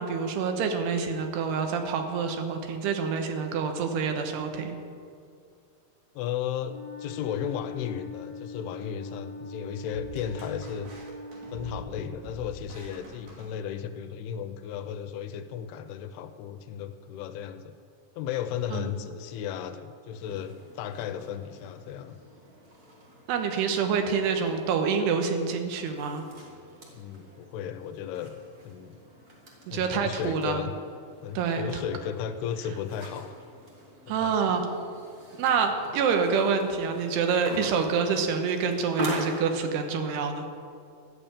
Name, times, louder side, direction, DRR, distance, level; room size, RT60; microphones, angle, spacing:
voice 1, 0.0-4.8 18.7-18.9 23.3-26.2 29.7-30.6 31.4-31.6 34.1-34.6 35.4-40.4, right 6 dB, 85° right, 5 dB, 3.2 m, -27 dB
voice 2, 6.2-10.9 11.5-17.7 18.2-22.2 26.9-28.4 28.7-29.0 29.7-30.7 31.2-33.4 34.1-34.6, left 8 dB, 80° left, 10 dB, 2.5 m, -35 dB
Wind instrument woodwind instrument, 6.6-12.0, left 3 dB, 60° left, 1.7 m, -42 dB
sound 1, 9.9-14.1, equal, 55° right, 3.6 m, -46 dB
sound 2, 20.1-39.6, equal, 40° right, 1.4 m, -42 dB
13.0 x 6.8 x 8.8 m, 2.4 s
omnidirectional pair, 4.7 m